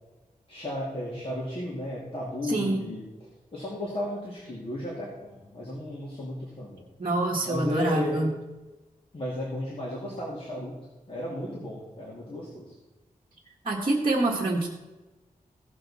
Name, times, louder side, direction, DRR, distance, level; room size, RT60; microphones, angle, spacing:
voice 1, 0.5-3.0 3.5-6.8 7.4-8.2 9.1-10.8 11.1-12.7, left 1 dB, 40° left, -5 dB, 2.5 m, -34 dB
voice 2, 2.4-2.9 7.0-8.3 13.6-14.7, right 2 dB, 40° right, -2 dB, 1.5 m, -26 dB
16.0 x 6.9 x 4.2 m, 1.1 s
wide cardioid pair, 150°, 15 cm